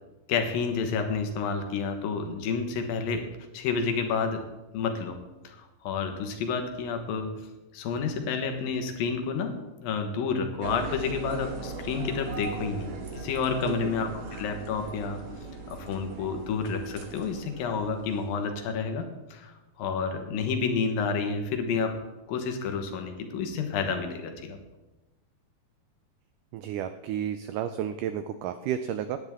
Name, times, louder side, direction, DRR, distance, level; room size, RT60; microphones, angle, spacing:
voice 1, 0.3-3.3 3.5-4.4 4.7-5.2 5.4-7.4 7.7-15.2 15.7-21.9 22.3-24.6, left 5 dB, 70° left, 5 dB, 3.0 m, -30 dB
sound 1, 10.6-18.4, right 3 dB, 50° right, 1.8 m, -39 dB
voice 2, 26.5-29.2, right 10 dB, 90° right, 10 dB, 1.8 m, -32 dB
18.0 x 9.8 x 3.6 m, 1.1 s
omnidirectional pair, 4.3 m